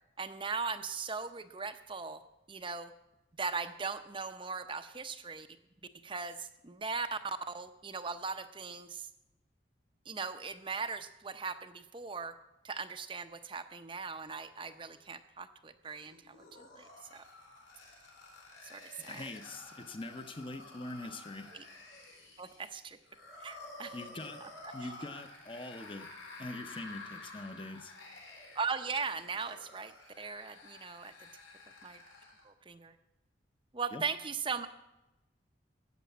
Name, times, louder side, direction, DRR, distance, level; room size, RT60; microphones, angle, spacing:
voice 1, 0.2-2.2 2.5-2.9 3.4-5.5 6.0-9.1 10.1-12.4 12.6-17.2 18.6-19.3 21.5-21.6 22.4-23.0 23.4-24.0 28.6-29.9 30.2-31.3 31.8-32.0 32.4-32.9 33.7-34.7, right 5 dB, 25° right, 8 dB, 0.6 m, -39 dB
sound 1, 15.8-32.5, left 2 dB, 85° left, 3.9 m, -51 dB
voice 2, 19.1-21.5 23.9-24.4 24.7-26.1 26.4-27.9 33.9-34.0, left 2 dB, 25° left, 8 dB, 0.8 m, -43 dB
13.5 x 8.2 x 8.3 m, 0.95 s
head